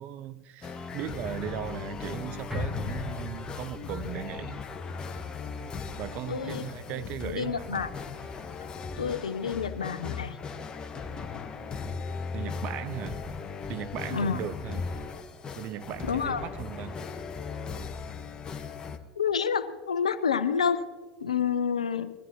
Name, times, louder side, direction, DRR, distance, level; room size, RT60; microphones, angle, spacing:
voice 1, 0.0-4.6 6.0-7.9 12.3-13.2 13.7-14.8 15.6-17.0, right 11 dB, 45° right, 0.7 m, -37 dB
sound 1, 0.6-19.0, left 5 dB, 25° left, 1.1 m, -38 dB
sound 2, 2.5-7.0 7.3-7.4, left 2 dB, 10° right, 1.6 m, -40 dB
voice 2, 6.3-6.7 6.9-7.9 9.0-10.4 14.1-14.4 16.0-16.4 19.2-20.9 21.2-22.1, left 7 dB, 80° left, 0.6 m, -29 dB
21.0 x 13.5 x 2.9 m
figure-of-eight pair, 80°, 3 cm